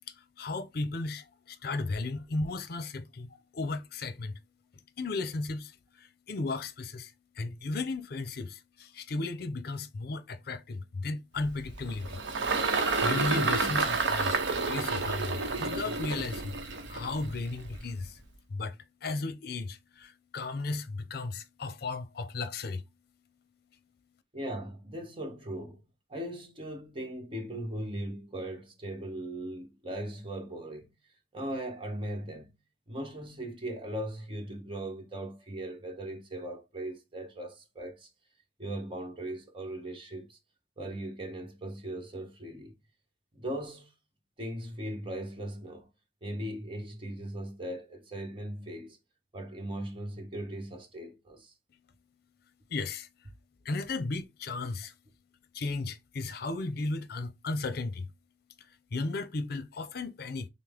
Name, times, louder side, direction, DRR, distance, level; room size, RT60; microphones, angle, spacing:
voice 1, 0.4-4.3 5.0-5.7 6.0-12.2 12.8-18.2 18.5-22.8 52.7-53.1 53.6-54.9 55.5-58.1 58.9-60.5, left 3 dB, 60° left, 0.6 m, -35 dB
Engine, 11.4-18.0, right 3 dB, 85° right, 0.7 m, -30 dB
voice 2, 24.3-25.8 26.1-30.9 31.3-32.6 32.9-38.1 38.6-40.4 40.8-42.8 43.3-43.9 44.4-45.9 46.2-49.0 49.3-51.5, right 1 dB, 30° right, 1.1 m, -39 dB
5.9 x 2.0 x 3.4 m
head